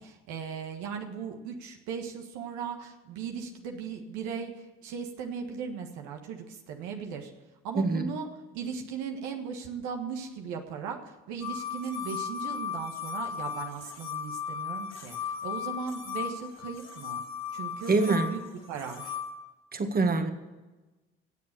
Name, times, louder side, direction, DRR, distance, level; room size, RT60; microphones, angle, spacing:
voice 1, 0.0-4.5 4.8-7.3 7.6-8.3 8.5-11.0 11.3-17.2 17.5-18.0 18.2-18.4 18.7-19.1, right 6 dB, 80° right, 3 dB, 1.5 m, -37 dB
voice 2, 7.8-8.1 17.9-18.4 19.7-20.3, right 3 dB, 30° right, 7 dB, 1.6 m, -25 dB
sound 1, 11.4-19.3, left 7 dB, 60° left, 3.2 m, -36 dB
17.0 x 7.4 x 6.7 m, 1.1 s
supercardioid pair, 65°, 29 cm